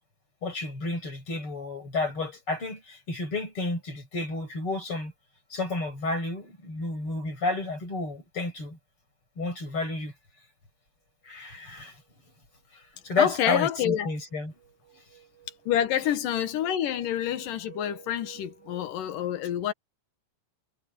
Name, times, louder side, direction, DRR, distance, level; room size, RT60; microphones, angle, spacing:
voice 1, 0.4-5.1 5.5-8.8 9.4-10.1 11.2-12.0 12.7-14.5, left 3 dB, 40° left, 7.7 m, -31 dB
sound 1, 12.0-12.3 12.8-19.1, right 12 dB, 25° right, 7.9 m, -53 dB
voice 2, 13.2-14.1 15.7-19.7, left 10 dB, 90° left, 3.0 m, -27 dB
omnidirectional pair, 3.7 m